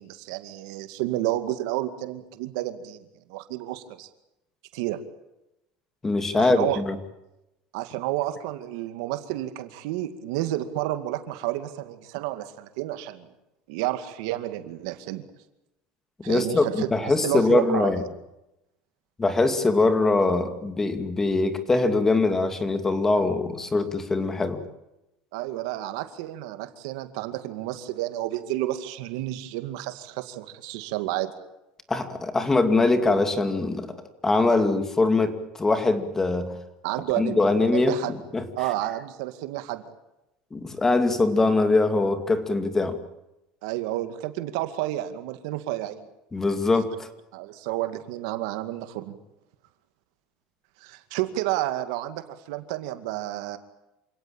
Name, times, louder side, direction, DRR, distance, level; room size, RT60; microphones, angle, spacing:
voice 1, 0.0-4.1 4.7-5.0 6.4-6.8 7.7-13.3 13.7-15.2 16.2-17.9 25.3-31.3 36.8-38.1 38.5-39.8 43.6-46.1 47.3-49.2 50.8-53.6, right 15 dB, 80° right, 10 dB, 2.2 m, -30 dB
voice 2, 6.0-7.0 16.3-18.0 19.2-24.6 31.9-34.0 34.2-36.6 37.2-37.9 38.3-38.5 40.5-43.0 46.3-46.9, left 3 dB, 15° left, 9 dB, 2.4 m, -22 dB
27.5 x 17.5 x 9.0 m, 0.92 s
supercardioid pair, 130°, 3 cm